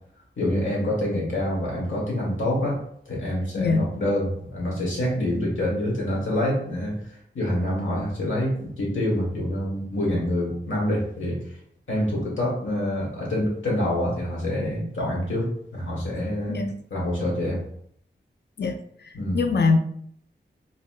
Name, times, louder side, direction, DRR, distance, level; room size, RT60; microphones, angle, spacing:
voice 1, 0.4-11.4 11.9-16.5 16.9-17.6 19.1-19.4, left 1 dB, 75° left, -4 dB, 1.4 m, -26 dB
voice 2, 3.6-3.9 16.5-16.7 18.6-19.8, left 4 dB, 60° left, 6 dB, 0.5 m, -23 dB
4.0 x 2.2 x 2.4 m, 0.66 s
cardioid pair, 50°, 20 cm